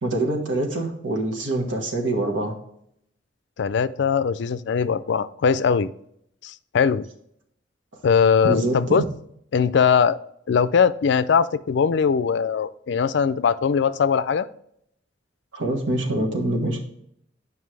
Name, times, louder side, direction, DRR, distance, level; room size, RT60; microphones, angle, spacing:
voice 1, 0.0-2.5 8.4-9.0 15.5-16.8, right 2 dB, 85° right, 2 dB, 1.5 m, -25 dB
voice 2, 3.6-5.9 6.4-7.0 8.0-9.0 9.5-10.2 10.5-14.5, left 6 dB, 65° left, 14 dB, 0.4 m, -20 dB
9.5 x 5.3 x 3.3 m, 0.73 s
head